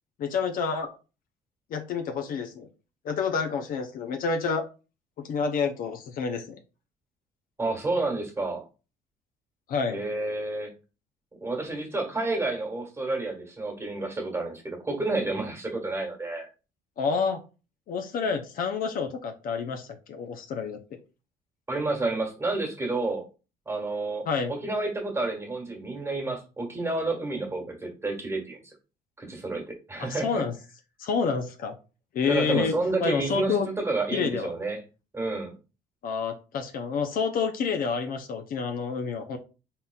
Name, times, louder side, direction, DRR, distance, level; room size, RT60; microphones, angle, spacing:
voice 1, 0.2-1.0 1.7-2.7 3.0-4.6 5.2-6.6 9.7-10.0 17.0-17.4 17.9-20.8 24.3-24.5 30.0-30.5 31.0-31.8 32.1-32.7 33.0-33.7 34.1-34.5 36.0-39.4, left 5 dB, 55° left, 5 dB, 0.6 m, -28 dB
voice 2, 7.6-8.6 9.9-10.7 11.4-16.5 21.7-23.2 23.6-28.7 29.2-30.4 32.3-34.8 35.1-35.5, right 2 dB, 15° right, 0 dB, 1.5 m, -30 dB
4.0 x 3.7 x 2.3 m, 0.32 s
cardioid pair, 110°, 17 cm